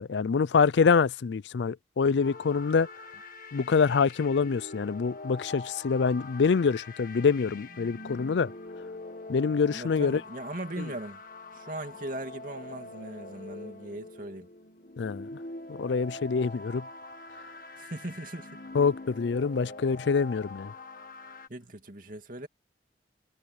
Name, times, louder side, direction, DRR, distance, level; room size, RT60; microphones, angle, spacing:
voice 1, 0.0-2.9 3.5-8.5 9.3-10.2 15.0-15.3 15.7-16.8 18.7-20.7, left 5 dB, 80° left, 0.4 m, -25 dB
sound 1, 2.2-21.5, left 2 dB, 50° left, 1.7 m, -44 dB
voice 2, 9.7-11.2 11.5-14.5 17.8-18.6 21.5-22.5, right 1 dB, 50° right, 2.6 m, -39 dB
head